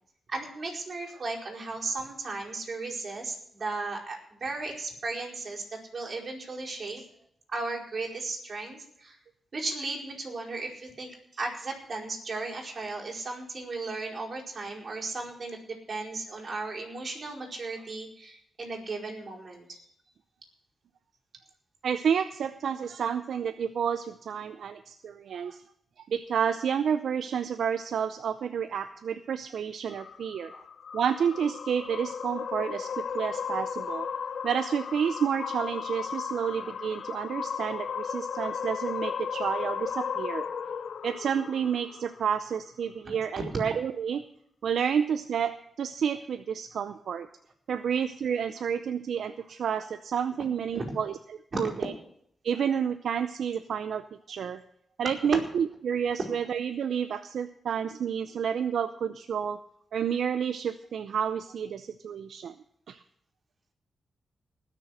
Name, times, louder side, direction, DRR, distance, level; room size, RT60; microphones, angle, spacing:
voice 1, 0.3-7.0 7.5-9.2 9.5-19.8 25.4-25.6 30.5-30.7 30.9-31.0 43.0-43.1 50.7-50.9 51.5-51.9, right 3 dB, 50° right, -2 dB, 4.7 m, -36 dB
voice 2, 21.8-25.6 26.1-30.5 30.9-34.1 34.4-40.5 41.0-44.2 44.6-47.3 47.7-51.2 51.6-51.9 52.4-54.6 55.0-59.6 59.9-62.5 62.9-63.0, right 7 dB, 80° right, 10 dB, 0.6 m, -30 dB
sound 1, 29.9-42.4, left 7 dB, 70° left, 0.5 m, -35 dB
19.5 x 6.8 x 6.4 m, 0.69 s
cardioid pair, 65°, 0 cm